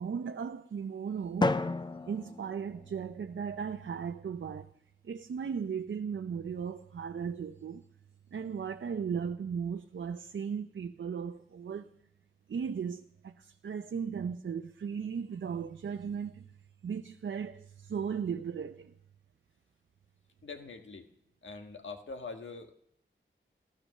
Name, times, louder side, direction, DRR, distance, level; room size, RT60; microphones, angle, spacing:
voice 1, 0.0-1.6 2.0-4.7 5.0-7.8 8.3-11.9 12.5-16.5 16.8-18.9, right 6 dB, 70° right, 0.7 m, -36 dB
Drum, 1.4-3.4, left 2 dB, 25° left, 0.6 m, -33 dB
voice 2, 20.4-21.1 21.4-22.7, left 4 dB, 75° left, 1.7 m, -43 dB
16.0 x 13.5 x 6.5 m
wide cardioid pair, 120°, 20 cm